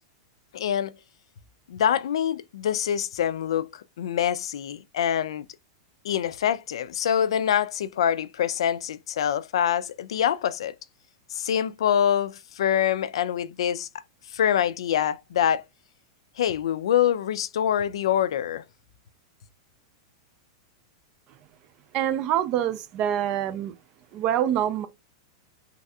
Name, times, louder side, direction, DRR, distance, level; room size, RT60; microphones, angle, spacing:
voice 1, 0.5-0.9 1.7-5.5 6.0-10.7 11.3-13.9 14.3-15.6 16.4-18.6, left 9 dB, 85° left, 0.3 m, -25 dB
voice 2, 21.9-23.7 24.1-24.9, right 10 dB, 30° right, 0.3 m, -25 dB
3.2 x 2.7 x 2.3 m
supercardioid pair, 170°, 3 cm